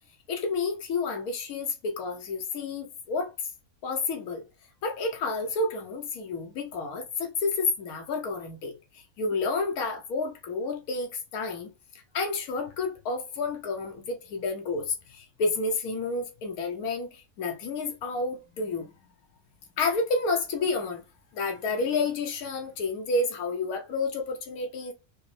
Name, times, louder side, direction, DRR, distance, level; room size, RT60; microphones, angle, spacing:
voice 1, 0.3-3.5 3.8-4.4 4.8-11.7 12.1-18.9 19.8-21.0 21.3-24.9, left 3 dB, 90° left, 1.2 m, -30 dB
5.0 x 2.0 x 3.1 m
omnidirectional pair, 1.5 m